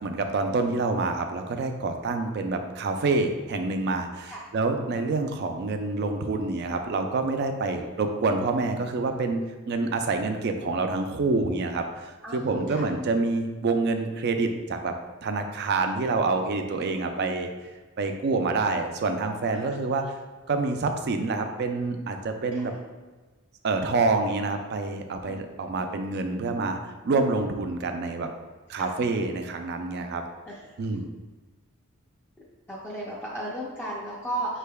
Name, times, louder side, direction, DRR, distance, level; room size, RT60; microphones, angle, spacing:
voice 1, 0.0-9.4 9.7-14.9 15.2-17.5 18.0-20.0 20.5-22.7 23.6-28.3 28.7-30.2 30.8-31.1, right 3 dB, 50° right, 6 dB, 0.4 m, -27 dB
voice 2, 12.2-12.9 16.7-17.3 19.5-19.7 22.5-22.8 25.2-25.4 28.8-28.9 30.4-30.7 32.7-34.6, right 1 dB, 10° left, -7 dB, 0.5 m, -36 dB
5.5 x 3.3 x 2.2 m, 1.3 s
head